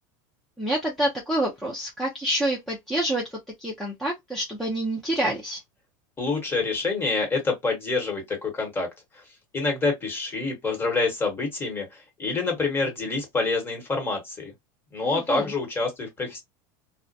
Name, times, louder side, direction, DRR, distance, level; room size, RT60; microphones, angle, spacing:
voice 1, 0.6-5.6 15.0-15.5, right 1 dB, ahead, 0.6 m, -28 dB
voice 2, 6.2-8.9 9.1-9.2 9.5-14.5 14.9-16.4, left 3 dB, 20° left, 1.1 m, -27 dB
2.4 x 2.1 x 2.6 m
supercardioid pair, 130°, 11 cm